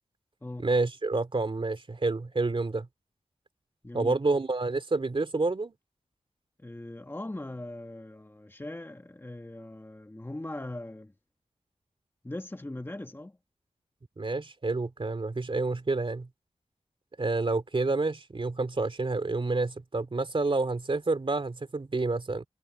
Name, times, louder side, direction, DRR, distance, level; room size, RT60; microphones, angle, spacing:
voice 1, 0.6-2.9 3.9-5.7 14.2-16.3 17.2-22.5, right 3 dB, 45° right, 2.9 m, -29 dB
voice 2, 3.8-4.2 6.6-11.1 12.2-13.4, left 1 dB, 20° left, 1.5 m, -40 dB
wide cardioid pair, 75°, 12 cm